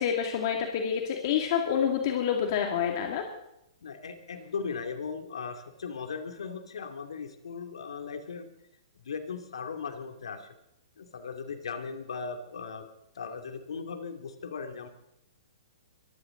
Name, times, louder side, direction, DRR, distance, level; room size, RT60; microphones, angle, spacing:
voice 1, 0.0-3.3, left 8 dB, 50° left, 2 dB, 2.5 m, -28 dB
voice 2, 3.8-8.5 9.0-10.5 11.0-12.9 13.1-14.9, left 5 dB, 75° left, 6 dB, 2.8 m, -38 dB
23.5 x 15.0 x 4.0 m, 0.83 s
hypercardioid pair, 130°, 3 cm